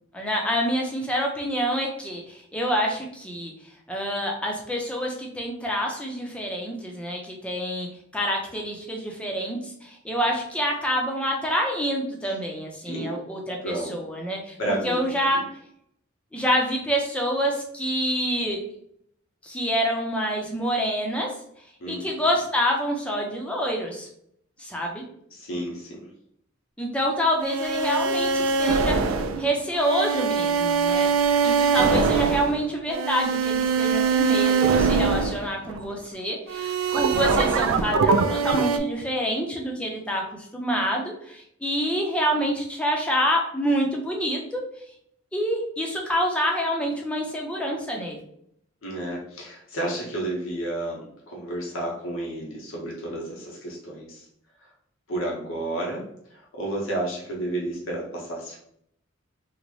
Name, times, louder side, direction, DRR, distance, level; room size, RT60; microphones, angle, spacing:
voice 1, 0.1-3.5 3.9-7.9 8.1-14.6 14.8-15.4 16.3-18.6 19.4-21.3 21.9-24.1 24.6-25.0 26.8-29.0 29.4-31.1 31.4-44.6 45.3-48.2, equal, 5° left, 0 dB, 0.5 m, -27 dB
voice 2, 13.6-14.0 14.6-15.1 21.8-22.0 25.3-26.0 48.8-54.2 55.1-56.0 56.6-58.6, right 1 dB, 80° left, -3 dB, 0.8 m, -31 dB
sound 1, 27.4-35.9 36.5-38.8, right 5 dB, 85° right, 0.3 m, -23 dB
3.8 x 2.1 x 3.1 m, 0.70 s
head